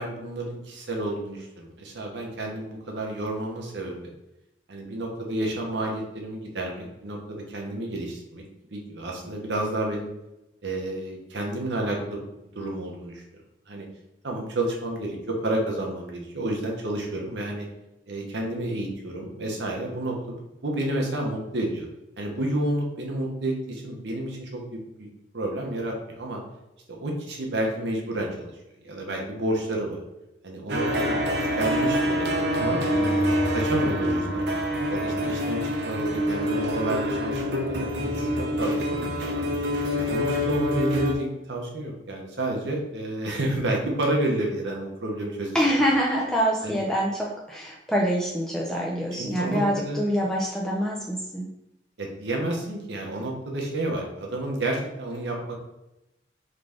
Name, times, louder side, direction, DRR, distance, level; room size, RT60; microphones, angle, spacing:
voice 1, 0.0-4.1 4.7-8.4 8.7-10.1 10.6-12.2 12.5-13.2 13.7-13.9 14.2-17.7 18.1-20.4 20.6-21.8 22.2-25.1 25.3-26.4 26.9-28.5 28.8-30.0 30.4-31.2 31.5-34.4 34.9-39.4 40.0-45.8 46.6-46.8 49.2-50.0 52.0-55.5, right 1 dB, 90° right, 0 dB, 1.0 m, -30 dB
sound 1, 30.7-41.1, equal, 65° right, 0.7 m, -26 dB
voice 2, 45.5-51.5, equal, 5° left, -4 dB, 0.5 m, -25 dB
3.9 x 3.3 x 3.5 m, 0.91 s
head